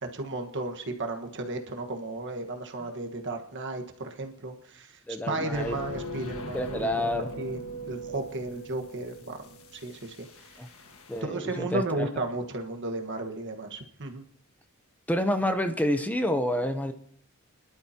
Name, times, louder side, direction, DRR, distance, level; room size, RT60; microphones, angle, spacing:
voice 1, 0.0-5.0 5.3-7.1 7.3-7.6 7.9-10.3 11.2-14.2, right 2 dB, 55° right, 4 dB, 1.4 m, -34 dB
voice 2, 5.1-5.8 6.5-7.3 10.6-10.7 11.1-12.1 15.1-16.9, left 1 dB, 5° left, 8 dB, 0.6 m, -28 dB
sound 1, 5.5-11.2, right 1 dB, 75° left, 1.5 m, -40 dB
29.5 x 11.5 x 2.8 m, 0.65 s
head